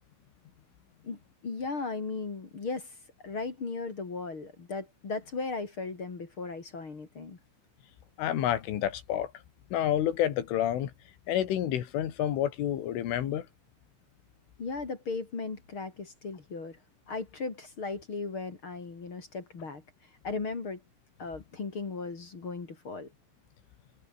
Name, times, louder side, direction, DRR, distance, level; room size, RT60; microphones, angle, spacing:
voice 1, 1.0-2.9 3.2-7.4 14.6-16.8 17.1-19.8 20.2-20.8 21.2-23.1, left 4 dB, 30° left, 2.9 m, -37 dB
voice 2, 8.2-9.3 9.7-10.9 11.3-13.5, left 11 dB, 75° left, 4.8 m, -29 dB
omnidirectional pair, 5.9 m